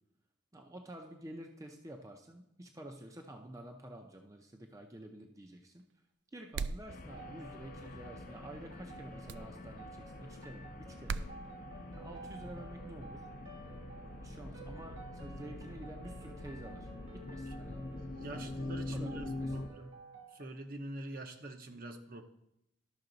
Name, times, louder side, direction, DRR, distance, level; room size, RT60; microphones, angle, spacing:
voice 1, 0.5-5.9 6.3-11.3 11.9-13.3 14.2-17.8 18.3-18.6 18.9-19.8, right 1 dB, 15° right, 3 dB, 0.5 m, -50 dB
sound 1, 6.5-6.9 9.3-9.5 11.1-11.3, right 5 dB, 65° right, 0.3 m, -36 dB
sound 2, 6.9-19.7, left 2 dB, 45° left, 0.6 m, -44 dB
sound 3, 7.1-20.4, right 3 dB, 85° right, 1.2 m, -53 dB
voice 2, 18.2-20.0 20.3-22.2, right 1 dB, 50° right, 6 dB, 0.8 m, -45 dB
12.0 x 5.6 x 3.9 m, 0.79 s
head